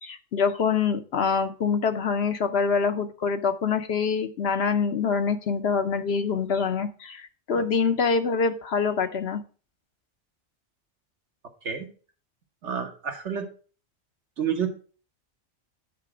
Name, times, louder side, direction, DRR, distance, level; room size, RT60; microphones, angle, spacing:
voice 1, 0.0-9.4, left 5 dB, 60° left, 8 dB, 1.0 m, -25 dB
voice 2, 12.6-13.5 14.4-14.7, right 7 dB, 70° right, 5 dB, 1.5 m, -29 dB
9.2 x 4.2 x 4.8 m, 0.38 s
omnidirectional pair, 1.2 m